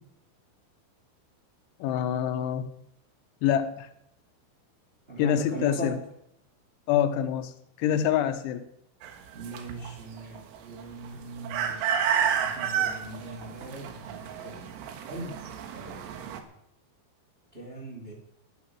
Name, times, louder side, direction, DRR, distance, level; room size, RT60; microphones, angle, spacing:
voice 1, 1.8-2.6 3.4-3.9 5.2-6.0 6.9-7.5 7.8-8.6, left 9 dB, 75° left, 9 dB, 3.0 m, -26 dB
voice 2, 5.1-5.9 9.3-14.6 15.1-15.3 15.7-16.0 17.5-18.1, right 2 dB, 35° right, -3 dB, 0.8 m, -40 dB
sound 1, 9.0-16.4, right 8 dB, 85° right, 4.1 m, -31 dB
12.5 x 11.5 x 6.1 m, 0.76 s
omnidirectional pair, 5.9 m